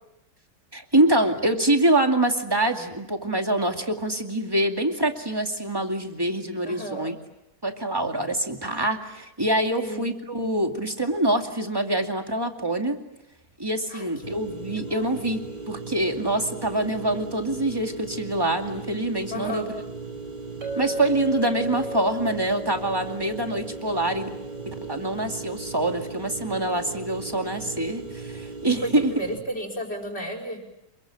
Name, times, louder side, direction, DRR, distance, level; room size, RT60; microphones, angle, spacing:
voice 1, 0.7-7.2 7.6-13.0 13.6-19.6 20.8-24.3 24.8-29.1, right 1 dB, 15° right, 4 dB, 2.3 m, -25 dB
voice 2, 6.7-7.1 9.8-10.1 13.9-14.1 14.8-15.2 19.3-19.7 28.8-30.6, equal, 35° left, 1 dB, 5.5 m, -33 dB
sound 1, 14.2-29.4, right 4 dB, 30° right, 2.2 m, -37 dB
Chink clink, 20.6-25.1, equal, 90° right, 6.0 m, -35 dB
28.0 x 23.0 x 9.0 m, 0.87 s
omnidirectional pair, 1.8 m